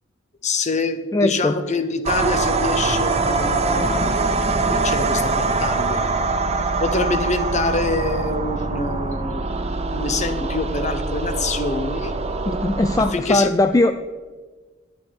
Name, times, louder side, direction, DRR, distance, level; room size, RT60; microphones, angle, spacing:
voice 1, 0.4-6.1 6.8-9.5 9.9-12.1 13.0-13.5, left 3 dB, 35° left, 10 dB, 0.8 m, -26 dB
voice 2, 1.1-1.6 12.5-13.9, left 2 dB, 15° left, 9 dB, 0.3 m, -19 dB
sound 1, 2.1-13.1, right 3 dB, 30° right, 0.6 m, -23 dB
11.5 x 8.4 x 4.7 m, 1.4 s
head